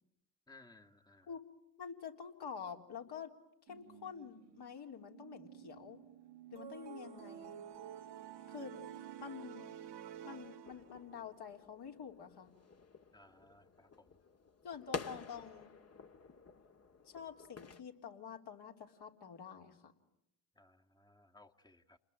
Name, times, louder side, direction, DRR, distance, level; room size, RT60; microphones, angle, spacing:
voice 1, 0.5-1.3 13.1-14.2 20.6-22.0, left 2 dB, 10° left, 4 dB, 1.9 m, -62 dB
voice 2, 1.8-3.3 3.7-6.0 6.5-7.6 8.5-8.8 9.2-9.7 10.2-12.5 14.6-15.7 17.1-19.9, left 7 dB, 55° left, 3 dB, 3.8 m, -48 dB
sound 1, 3.7-9.3, right 12 dB, 85° right, 2.5 m, -57 dB
sound 2, 6.6-11.2, right 10 dB, 60° right, 2.0 m, -50 dB
sound 3, 10.7-17.8, left 4 dB, 30° left, 2.0 m, -50 dB
29.5 x 21.0 x 9.3 m, 0.81 s
hypercardioid pair, 55°, 48 cm